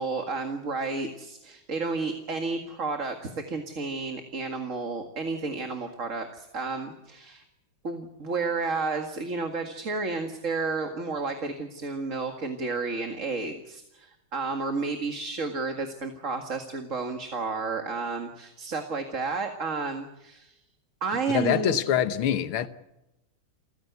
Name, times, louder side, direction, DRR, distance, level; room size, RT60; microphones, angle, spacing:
voice 1, 0.0-7.4 7.8-20.6 21.0-21.8, right 4 dB, 40° right, 2.2 m, -31 dB
voice 2, 21.3-22.7, left 10 dB, 85° left, 2.0 m, -25 dB
29.5 x 15.5 x 8.1 m
omnidirectional pair, 2.3 m